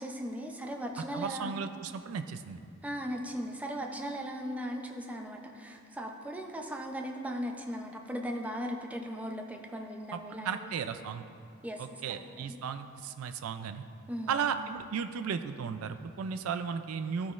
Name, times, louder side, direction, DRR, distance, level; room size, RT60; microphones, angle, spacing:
voice 1, 0.0-1.5 2.8-10.7 11.6-12.6 14.1-14.5, equal, 5° right, 1 dB, 0.5 m, -38 dB
voice 2, 1.1-2.6 10.1-10.2 10.4-11.2 11.8-13.8 14.3-17.3, right 6 dB, 80° right, 9 dB, 0.4 m, -35 dB
14.0 x 5.9 x 2.4 m, 2.3 s
head